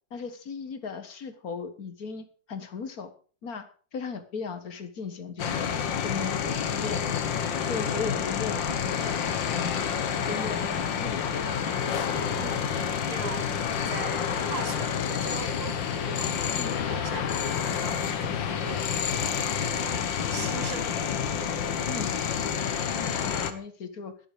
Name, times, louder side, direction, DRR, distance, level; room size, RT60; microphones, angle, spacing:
voice 1, 0.1-3.1 3.4-3.7 3.9-5.6 6.0-7.4 7.6-9.2 9.5-11.8 16.5-16.8 21.9-22.2 22.9-23.1 23.4-24.1, left 5 dB, 55° left, 1.7 m, -37 dB
sound 1, 5.4-23.5, left 7 dB, 85° left, 1.9 m, -29 dB
voice 2, 12.2-21.0 22.4-22.9, right 7 dB, 60° right, 1.3 m, -42 dB
11.5 x 11.5 x 4.8 m
omnidirectional pair, 2.0 m